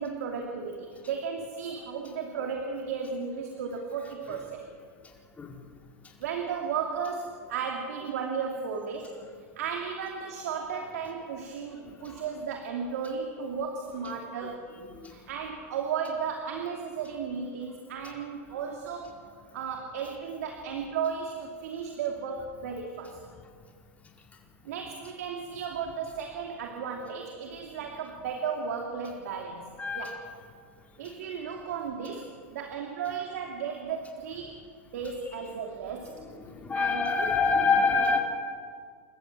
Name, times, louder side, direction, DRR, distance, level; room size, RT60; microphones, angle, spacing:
voice 1, 0.0-4.6 6.2-9.2 9.6-14.7 15.0-19.2 19.5-23.2 24.6-29.7 29.9-30.1 31.0-34.6 34.9-36.1 36.7-37.3 37.5-37.7, right 6 dB, 75° right, 2 dB, 2.9 m, -34 dB
voice 2, 29.8-30.1 36.4-38.2, left 4 dB, 15° left, 0 dB, 4.7 m, -26 dB
29.0 x 14.5 x 7.7 m, 2.1 s
hypercardioid pair, 115°, 8 cm